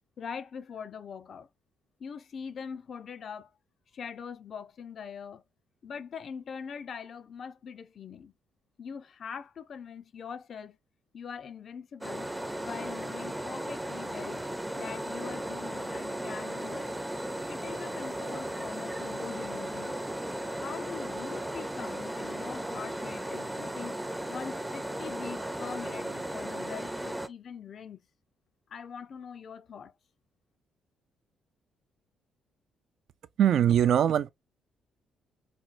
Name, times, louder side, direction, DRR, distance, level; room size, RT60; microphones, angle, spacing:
voice 1, 0.2-1.5 2.0-3.5 3.9-5.4 5.8-8.3 8.8-10.8 11.1-12.3 12.6-14.5 14.8-16.9 17.5-20.0 20.5-24.0 24.3-28.0 28.7-29.9, left 7 dB, 55° left, 0.4 m, -42 dB
sound 1, 12.0-27.3, right 1 dB, 5° right, 0.5 m, -36 dB
voice 2, 33.4-34.3, right 10 dB, 70° right, 0.3 m, -22 dB
4.2 x 2.2 x 2.4 m
cardioid pair, 90°, 0 cm